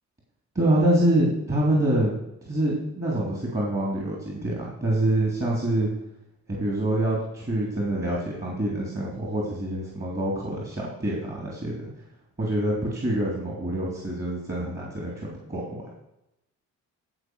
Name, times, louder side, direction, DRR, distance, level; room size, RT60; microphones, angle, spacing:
voice 1, 0.5-2.2 2.4-5.9 6.5-11.8 12.4-16.0, right 1 dB, 30° right, -3 dB, 3.1 m, -26 dB
14.0 x 4.7 x 6.2 m, 0.87 s
cardioid pair, 90°, 30 cm